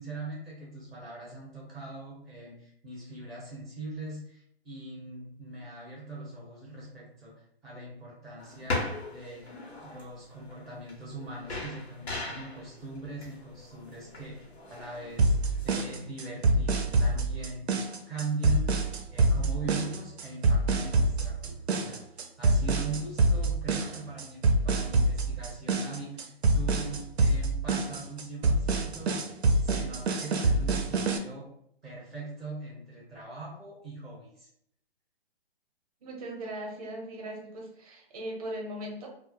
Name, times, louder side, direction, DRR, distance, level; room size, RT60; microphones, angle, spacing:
voice 1, 0.0-9.5 9.8-17.7 18.1-31.5 31.8-34.5, right 3 dB, 5° left, -24 dB, 0.3 m, -41 dB
sound 1, 8.4-15.8, left 2 dB, 85° left, 0.8 m, -39 dB
sound 2, 15.2-31.2, right 2 dB, 80° right, 0.5 m, -26 dB
voice 2, 36.0-39.1, right 1 dB, 35° right, 0 dB, 0.7 m, -39 dB
2.1 x 2.0 x 3.1 m, 0.71 s
hypercardioid pair, 145°, 32 cm